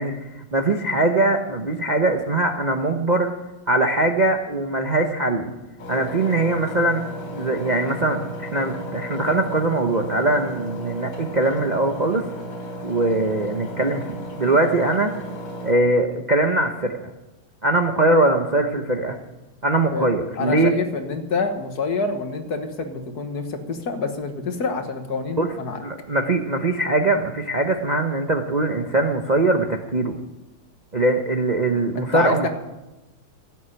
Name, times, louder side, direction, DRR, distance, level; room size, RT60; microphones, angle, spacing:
voice 1, 0.0-3.3 3.7-5.5 5.9-7.0 7.3-12.3 12.8-15.1 15.6-17.0 17.6-19.2 19.6-20.7 25.4-25.5 25.8-30.2 30.9-32.5, right 2 dB, 80° right, 4 dB, 0.4 m, -21 dB
Engine, 5.8-15.7, equal, 75° left, 4.3 m, -34 dB
voice 2, 20.4-25.8 31.9-32.5, left 4 dB, 50° left, 7 dB, 1.6 m, -27 dB
14.5 x 7.9 x 9.9 m, 1.0 s
omnidirectional pair, 2.4 m